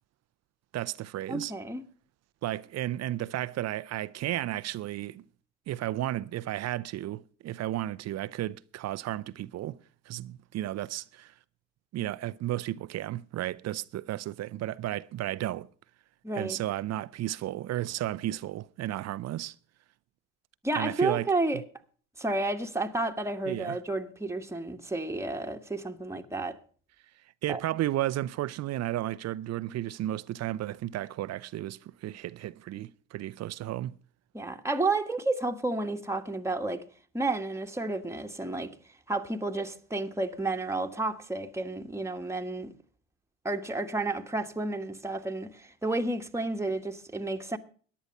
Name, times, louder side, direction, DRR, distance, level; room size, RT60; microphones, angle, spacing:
voice 1, 0.7-1.5 2.4-5.2 5.7-9.8 10.1-11.3 11.9-15.7 16.3-19.5 20.8-21.3 23.5-23.8 27.4-34.0, right 14 dB, 45° right, 0.6 m, -33 dB
voice 2, 1.3-1.8 16.2-16.6 20.6-21.6 22.2-26.6 27.5-27.6 34.3-36.8 37.1-38.7 39.1-42.7 43.4-47.6, right 2 dB, 5° right, 1.4 m, -31 dB
14.5 x 10.5 x 5.4 m
hypercardioid pair, 70°, 37 cm